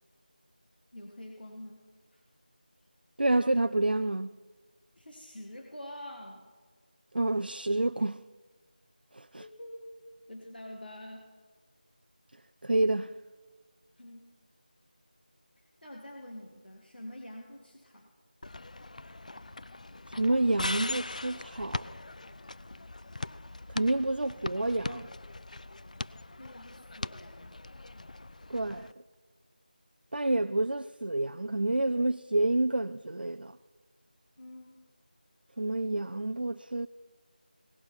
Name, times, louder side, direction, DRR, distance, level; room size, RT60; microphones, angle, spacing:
voice 1, 0.9-1.8 2.1-2.2 5.0-6.4 9.4-11.3 14.0-14.3 15.8-18.1 26.4-27.6 34.4-34.9, left 1 dB, 85° left, 1.9 m, -46 dB
voice 2, 3.2-4.3 7.1-8.2 9.1-9.4 12.6-13.1 20.1-21.9 23.7-25.1 28.5-28.9 30.1-33.5 35.6-36.9, right 2 dB, 85° right, 0.4 m, -28 dB
sound 1, 18.4-28.9, left 2 dB, 55° left, 0.4 m, -40 dB
18.0 x 12.0 x 4.3 m
figure-of-eight pair, 170°, 5 cm